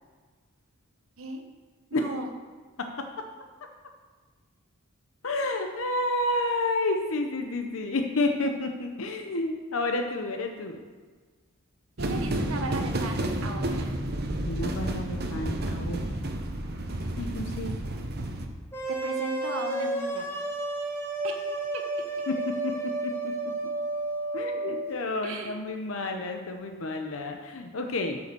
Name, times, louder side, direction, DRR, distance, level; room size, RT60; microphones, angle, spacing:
voice 1, 1.9-2.3 12.0-14.0 18.9-20.3 21.2-21.4 21.7-21.8 25.2-25.6, right 2 dB, 75° right, 4 dB, 1.0 m, -36 dB
voice 2, 5.2-10.8 14.4-16.3 17.2-17.8 22.3-23.4 24.3-28.2, left 2 dB, 70° left, 4 dB, 0.7 m, -30 dB
sound 1, 12.0-18.5, right 1 dB, 45° right, 0.9 m, -31 dB
sound 2, 18.7-24.9, right 2 dB, 10° left, 1.1 m, -31 dB
8.8 x 5.6 x 6.7 m, 1.5 s
head